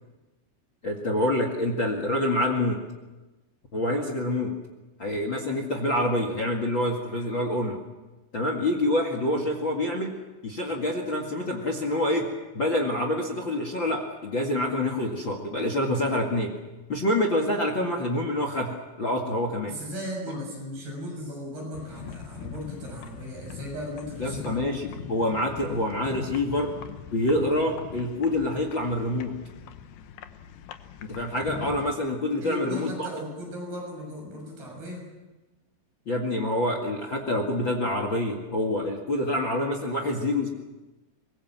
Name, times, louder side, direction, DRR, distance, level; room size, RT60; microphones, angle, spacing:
voice 1, 0.8-2.8 3.7-4.5 5.0-7.8 8.3-10.1 10.4-12.3 12.5-16.5 16.9-19.7 24.2-26.7 27.1-29.3 31.1-33.1 36.0-40.5, left 1 dB, 50° left, 4 dB, 1.3 m, -26 dB
voice 2, 19.7-24.7 32.4-35.1 39.9-40.1, equal, 55° right, 1 dB, 8.6 m, -37 dB
sound 1, 21.7-32.0, left 7 dB, 70° left, 2.3 m, -41 dB
24.5 x 22.0 x 7.5 m, 1.1 s
omnidirectional pair, 5.6 m